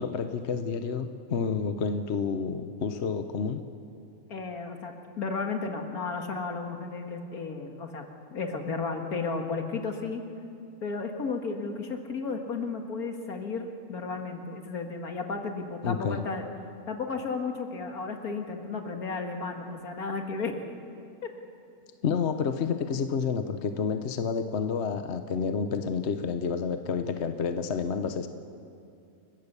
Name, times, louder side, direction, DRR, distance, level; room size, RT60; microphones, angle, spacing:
voice 1, 0.0-3.6 15.8-16.2 22.0-28.3, left 6 dB, 50° left, 9 dB, 1.1 m, -29 dB
voice 2, 4.3-8.1 8.3-10.2 10.8-16.4 16.9-20.6, left 4 dB, 70° left, 4 dB, 2.3 m, -33 dB
29.5 x 15.5 x 6.8 m, 2.5 s
omnidirectional pair, 1.6 m